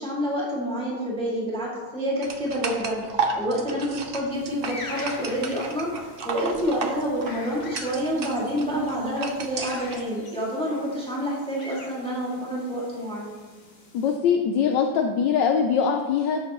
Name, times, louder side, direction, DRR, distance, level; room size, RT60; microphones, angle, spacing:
voice 1, 0.0-13.4, equal, 5° left, -5 dB, 2.0 m, -28 dB
sound 1, 2.2-10.0, right 4 dB, 70° right, 0.5 m, -33 dB
sound 2, 4.3-14.2, left 2 dB, 30° left, 1.1 m, -44 dB
voice 2, 13.9-16.4, left 7 dB, 75° left, 4 dB, 1.3 m, -22 dB
13.0 x 8.2 x 3.0 m, 1.4 s
omnidirectional pair, 2.0 m